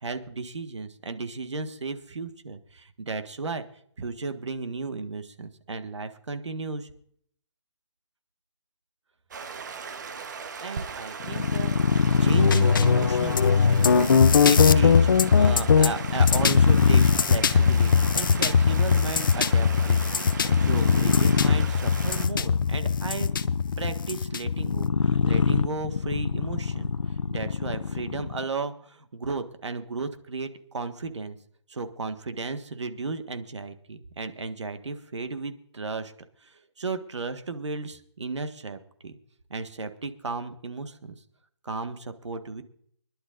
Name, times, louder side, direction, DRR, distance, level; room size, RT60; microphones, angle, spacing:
voice 1, 0.0-3.6 4.0-6.9 10.6-11.7 12.2-15.1 15.3-23.3 23.8-26.9 27.3-31.4 31.7-36.1 36.4-39.1 39.5-41.1 41.6-42.6, right 4 dB, 70° right, 8 dB, 1.6 m, -34 dB
Stream, 9.3-22.3, right 5 dB, 40° right, 1.1 m, -38 dB
sound 1, 11.2-28.5, left 5 dB, 90° left, 0.7 m, -26 dB
sound 2, 12.3-24.9, left 6 dB, 45° left, 0.6 m, -21 dB
25.0 x 11.5 x 2.6 m, 0.63 s
hypercardioid pair, 165°, 15 cm